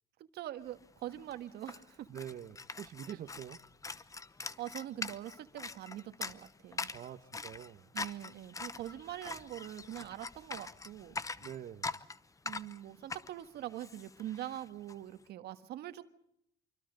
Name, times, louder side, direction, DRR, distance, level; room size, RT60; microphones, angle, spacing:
voice 1, 0.3-2.1 3.1-3.2 4.6-6.9 7.9-11.2 12.4-16.0, right 12 dB, 75° right, 10 dB, 1.6 m, -43 dB
sound 1, 0.8-0.9 1.1-15.0, left 4 dB, 20° left, 0.9 m, -43 dB
voice 2, 2.1-3.6 6.9-7.9 11.4-12.0, right 10 dB, 55° right, 6 dB, 1.2 m, -45 dB
25.5 x 24.0 x 5.2 m, 0.75 s
cardioid pair, 110°, 17 cm